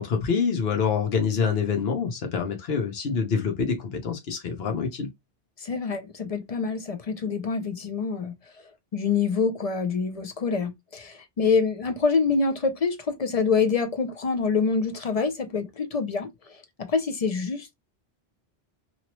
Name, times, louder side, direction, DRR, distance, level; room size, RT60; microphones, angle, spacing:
voice 1, 0.0-5.1, left 6 dB, 75° left, 1.1 m, -26 dB
voice 2, 5.6-8.3 8.9-16.3 16.9-17.7, left 5 dB, 50° left, 0.5 m, -26 dB
3.0 x 2.7 x 2.9 m
omnidirectional pair, 1.0 m